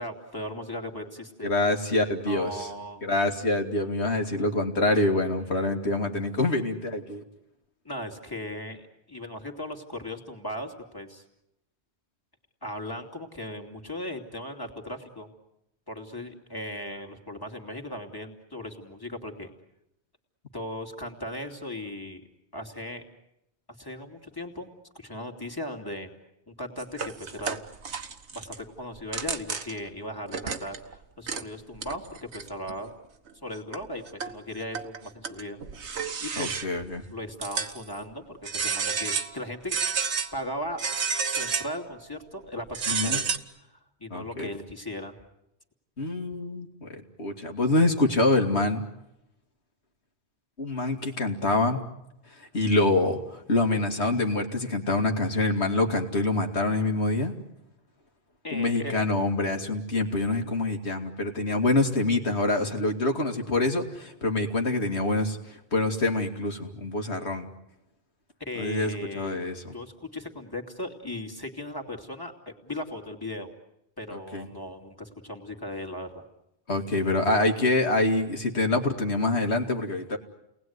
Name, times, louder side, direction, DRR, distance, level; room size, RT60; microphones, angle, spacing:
voice 1, 0.0-1.5 2.2-3.0 5.5-5.7 7.8-11.2 12.6-15.3 15.9-19.5 20.5-22.2 22.5-23.0 23.8-26.1 26.5-27.7 28.3-32.9 33.4-35.6 35.9-36.6 37.1-39.8 40.3-40.8 41.3-43.4 43.7-45.2 58.4-58.9 68.4-69.4 69.7-73.5 74.0-76.2, left 1 dB, 20° left, 4 dB, 2.7 m, -37 dB
voice 2, 1.4-2.7 3.0-7.2 36.4-37.0 42.9-43.2 44.1-44.5 46.0-46.9 47.2-48.8 50.6-51.8 52.4-57.3 58.5-67.5 68.6-69.7 74.1-74.5 76.7-80.2, left 2 dB, 75° left, 4 dB, 2.7 m, -26 dB
sound 1, 26.8-28.6 29.0-29.9 30.3-30.9 31.3-31.4 31.7-32.7 33.3-33.4 33.7-34.4 34.7-36.8 37.4-38.0 38.4-39.4 39.7-40.3 40.8-41.8 42.7-43.4, right 6 dB, 85° right, 1.6 m, -30 dB
30.0 x 20.0 x 9.6 m, 0.86 s
omnidirectional pair, 1.1 m